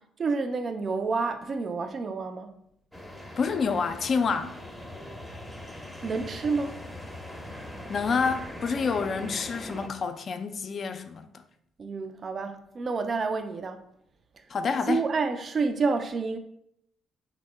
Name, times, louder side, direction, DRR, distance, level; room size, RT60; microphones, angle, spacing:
voice 1, 0.2-2.5 6.0-6.8 11.8-13.8 14.9-16.4, right 4 dB, 45° right, 0.3 m, -29 dB
sound 1, 2.9-9.9, left 1 dB, ahead, 0.5 m, -41 dB
voice 2, 3.4-4.5 7.9-11.3 14.5-15.1, left 5 dB, 50° left, 0.3 m, -28 dB
3.4 x 2.0 x 3.2 m
hypercardioid pair, 55°, 0 cm